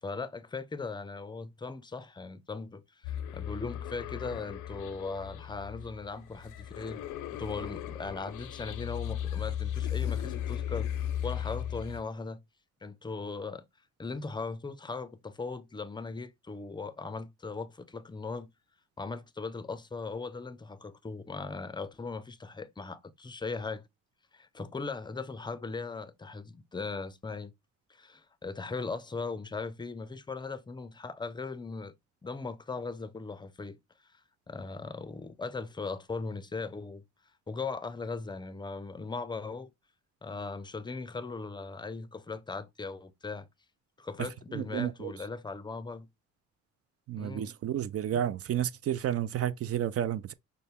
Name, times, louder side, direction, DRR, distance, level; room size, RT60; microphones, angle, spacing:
voice 1, 0.0-7.0 7.3-10.9 11.2-12.4 12.8-13.6 14.0-18.5 19.0-23.8 24.3-27.5 27.9-31.9 32.2-33.8 34.5-37.0 37.5-39.7 40.2-43.5 44.0-46.1 47.2-47.5, left 4 dB, 15° left, 0.5 m, -38 dB
sound 1, 3.0-12.0, left 10 dB, 90° left, 0.6 m, -36 dB
voice 2, 44.2-45.1 47.1-50.3, right 10 dB, 50° right, 0.4 m, -31 dB
5.4 x 2.1 x 3.4 m
cardioid pair, 90°, 30 cm